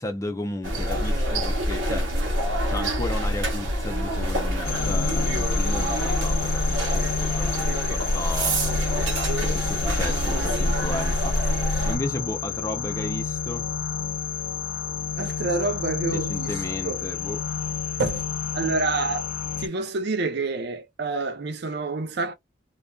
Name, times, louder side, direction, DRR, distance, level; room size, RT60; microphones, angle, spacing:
voice 1, 0.0-2.1 2.7-8.6 9.4-11.4 11.9-13.7 16.1-17.4, left 1 dB, 15° left, 0.4 m, -34 dB
sound 1, 0.6-12.0, equal, 75° right, 0.9 m, -25 dB
sound 2, 4.6-19.7, left 7 dB, 80° left, 0.4 m, -30 dB
voice 2, 15.2-17.1 18.0-18.2 18.5-19.3 19.6-22.3, right 3 dB, 55° right, 0.5 m, -28 dB
2.5 x 2.2 x 2.2 m
head